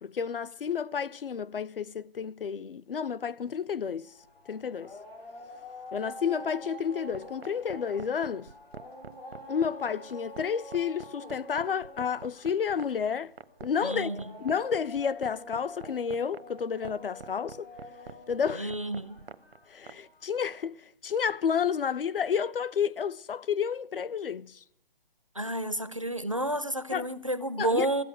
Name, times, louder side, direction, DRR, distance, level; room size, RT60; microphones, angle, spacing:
voice 1, 0.0-4.1 4.5-4.9 5.9-8.5 9.5-13.3 13.6-14.1 14.4-17.7 18.3-18.7 19.7-20.8 21.0-24.6 26.9-27.1 27.6-27.9, left 7 dB, 65° left, 0.5 m, -30 dB
sound 1, 4.1-20.4, left 1 dB, 90° left, 3.5 m, -47 dB
sound 2, 7.1-20.0, right 6 dB, 90° right, 0.8 m, -44 dB
voice 2, 13.8-14.2 18.5-19.2 25.4-28.0, right 1 dB, 35° right, 0.4 m, -30 dB
15.5 x 8.2 x 7.5 m
hypercardioid pair, 180°, 30 cm